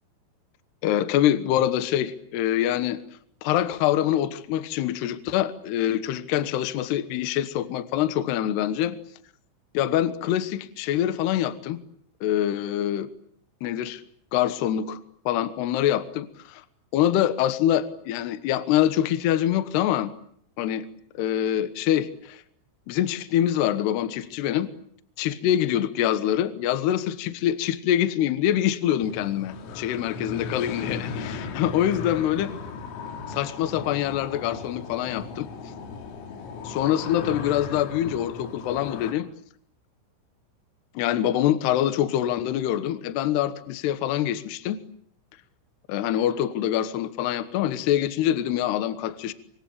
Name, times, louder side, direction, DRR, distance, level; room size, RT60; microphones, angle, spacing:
voice 1, 0.8-3.0 3.4-9.0 9.7-11.8 12.2-13.1 13.6-14.0 14.3-15.0 15.3-16.6 16.9-20.1 20.6-20.8 21.2-22.4 22.9-24.7 25.2-32.5 33.3-35.5 36.6-39.3 40.9-44.8 45.9-49.3, left 11 dB, 70° left, 12 dB, 2.8 m, -25 dB
sound 1, 29.0-39.1, left 4 dB, 85° left, 5.3 m, -37 dB
26.0 x 24.0 x 8.7 m, 0.65 s
omnidirectional pair, 5.9 m